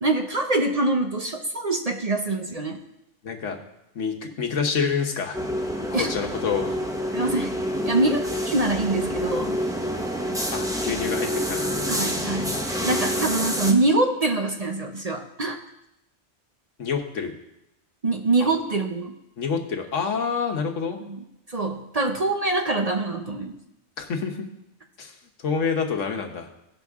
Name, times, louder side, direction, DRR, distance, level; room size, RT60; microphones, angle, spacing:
voice 1, 0.0-2.8 5.9-6.1 7.1-7.5 7.8-8.2 8.5-9.6 11.9-12.5 12.8-15.6 18.0-19.1 21.0-21.2 21.5-23.6, right 2 dB, 40° right, 4 dB, 0.7 m, -24 dB
voice 2, 3.2-3.6 3.9-5.4 5.9-6.8 10.5-11.7 16.8-17.3 18.4-18.5 19.4-21.0 24.0-24.4 25.0-26.5, left 5 dB, 85° left, 3 dB, 1.4 m, -27 dB
sound 1, 5.3-13.7, equal, 5° right, 0.7 m, -27 dB
16.5 x 5.9 x 3.6 m, 0.87 s
omnidirectional pair, 1.2 m